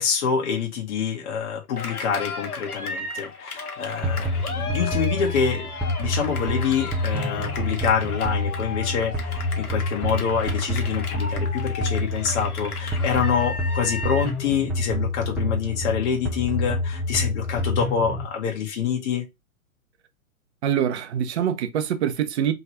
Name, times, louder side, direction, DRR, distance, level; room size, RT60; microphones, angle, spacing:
voice 1, 0.0-5.7 6.0-19.2, left 7 dB, 50° left, 1.5 m, -26 dB
Cheering, 1.8-14.4, left 4 dB, 85° left, 1.5 m, -35 dB
sound 1, 4.0-18.3, left 1 dB, 5° right, 0.5 m, -28 dB
voice 2, 20.6-22.5, right 9 dB, 50° right, 0.9 m, -24 dB
3.6 x 3.2 x 4.2 m
hypercardioid pair, 130°, 43 cm